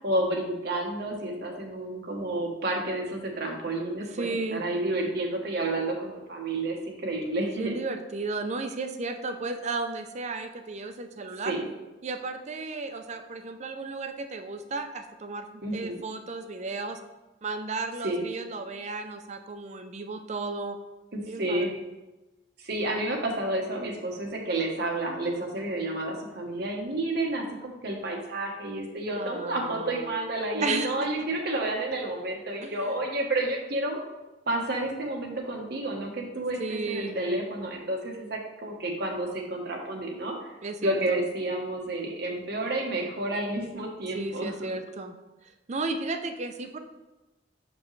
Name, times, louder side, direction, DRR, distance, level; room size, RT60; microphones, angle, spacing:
voice 1, 0.0-7.7 11.4-11.7 15.6-16.0 18.0-18.2 21.1-21.7 22.6-34.0 34.5-40.5 40.8-44.7, right 1 dB, 60° right, 1 dB, 1.1 m, -30 dB
voice 2, 4.0-4.6 7.4-11.6 12.0-17.0 17.4-20.8 21.3-21.7 29.1-30.2 30.6-30.9 32.6-33.0 36.6-37.2 40.6-41.2 44.1-45.1 45.4-46.8, right 3 dB, 40° right, 7 dB, 0.5 m, -34 dB
5.8 x 5.2 x 3.2 m, 1.1 s
head